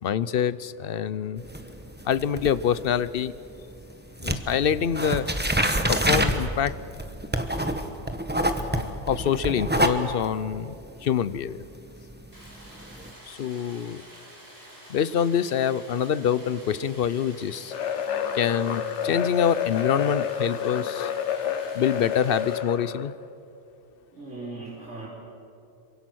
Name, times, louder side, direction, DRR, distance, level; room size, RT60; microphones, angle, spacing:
voice 1, 0.0-1.4 2.0-3.3 4.2-5.3 5.8-6.8 8.6-10.7 11.0-11.6 13.3-14.0 14.9-17.7 18.3-21.1 21.7-23.1, left 8 dB, 60° left, 16 dB, 0.8 m, -25 dB
sound 1, 1.4-3.9 4.2-13.1, right 1 dB, 10° right, 1.2 m, -27 dB
Stream, 12.3-22.6, equal, 60° right, 6.5 m, -48 dB
sound 2, 17.7-23.1, left 8 dB, 80° left, 1.1 m, -29 dB
voice 2, 24.1-25.1, right 2 dB, 85° right, -5 dB, 3.8 m, -38 dB
27.0 x 24.0 x 6.3 m, 2.7 s
omnidirectional pair, 1.2 m